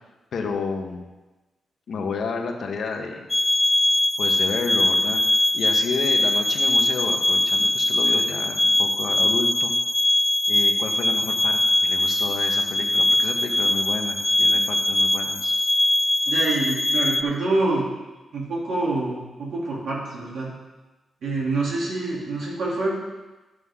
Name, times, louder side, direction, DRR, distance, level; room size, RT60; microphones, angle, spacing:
voice 1, 0.3-1.1 1.9-3.2 4.2-5.2 5.5-9.7 10.5-15.5, left 4 dB, 55° left, 3 dB, 1.1 m, -31 dB
sound 1, 3.3-17.2, left 1 dB, 20° left, 0.3 m, -21 dB
voice 2, 16.3-17.8 18.3-20.5 21.2-23.0, right 2 dB, 65° right, -5 dB, 2.8 m, -26 dB
11.0 x 7.8 x 3.7 m, 1.1 s
wide cardioid pair, 180°, 0 cm